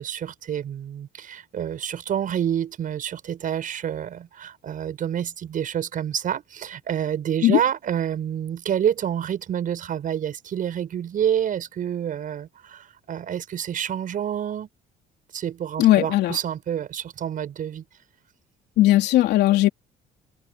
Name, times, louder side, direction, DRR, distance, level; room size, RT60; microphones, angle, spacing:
voice 1, 0.0-14.7 15.3-17.8, right 9 dB, 55° right, 6.6 m, -28 dB
voice 2, 15.8-16.4 18.8-19.7, left 15 dB, 80° left, 3.4 m, -17 dB
cardioid pair, 110°, 17 cm